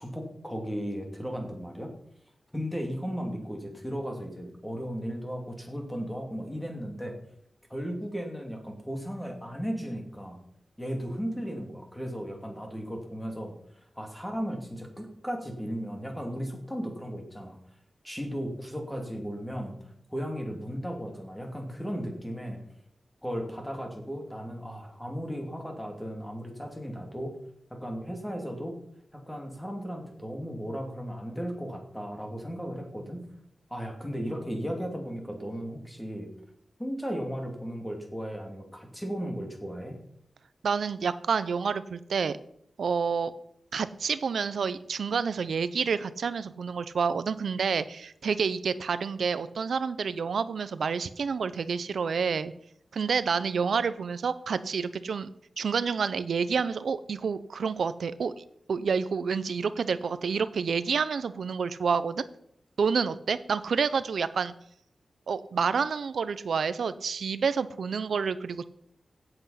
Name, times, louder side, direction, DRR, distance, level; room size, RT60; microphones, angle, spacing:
voice 1, 0.0-1.9 2.5-7.2 7.7-10.4 10.8-13.5 14.0-17.6 18.0-19.8 20.1-22.6 23.2-27.4 27.7-28.7 29.1-33.2 33.7-36.3 36.8-40.0, equal, 5° left, 2 dB, 2.7 m, -35 dB
voice 2, 40.6-42.4 42.8-43.3 43.7-52.5 52.9-55.3 55.6-62.2 62.8-64.5 65.3-68.7, right 5 dB, 85° right, 14 dB, 0.6 m, -29 dB
16.0 x 8.0 x 5.7 m, 0.71 s
wide cardioid pair, 145°, 0 cm